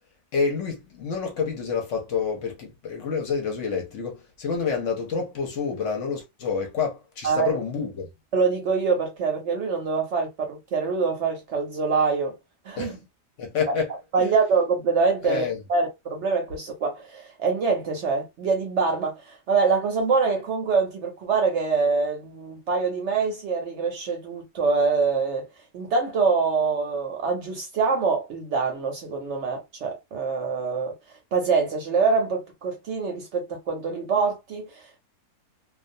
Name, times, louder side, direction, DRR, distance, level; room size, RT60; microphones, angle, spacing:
voice 1, 0.3-8.1 12.8-12.9 13.4-13.9 15.2-15.6, left 5 dB, 60° left, 0.9 m, -28 dB
voice 2, 7.2-7.6 8.3-12.4 12.6-13.0 13.7-13.8 14.1-15.4 15.7-25.5 25.7-31.0 31.3-35.0, right 4 dB, 65° right, 0.8 m, -25 dB
2.4 x 2.2 x 2.6 m
omnidirectional pair, 1.6 m